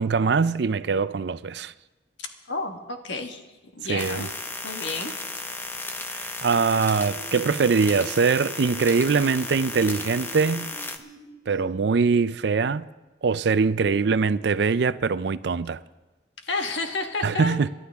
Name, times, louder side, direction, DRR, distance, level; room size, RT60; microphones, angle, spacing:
voice 1, 0.0-1.7 3.9-4.3 6.1-10.7 11.5-12.9 13.2-15.8 17.2-17.7, right 5 dB, 65° right, 0.4 m, -23 dB
voice 2, 2.2-3.4 3.7-4.3 4.6-5.1 16.5-17.6, left 3 dB, 80° left, 1.6 m, -31 dB
sound 1, 4.0-11.0, left 2 dB, 10° left, 0.7 m, -34 dB
sound 2, 9.7-9.8 10.2-10.7 11.0-11.2 11.5-11.6, equal, 25° right, 5.0 m, -43 dB
27.5 x 11.5 x 3.6 m
head